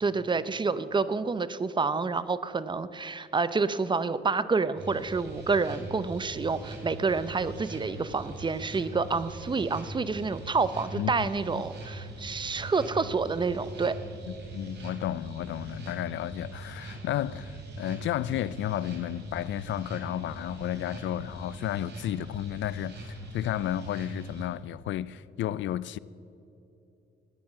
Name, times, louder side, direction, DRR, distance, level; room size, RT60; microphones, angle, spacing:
voice 1, 0.0-14.0, right 4 dB, 25° right, 0.7 m, -28 dB
sound 1, 4.8-24.4, right 2 dB, 60° right, 3.9 m, -42 dB
voice 2, 11.0-11.3 14.5-26.0, left 12 dB, 70° left, 0.5 m, -32 dB
15.5 x 9.5 x 7.4 m
cardioid pair, 90°, 20 cm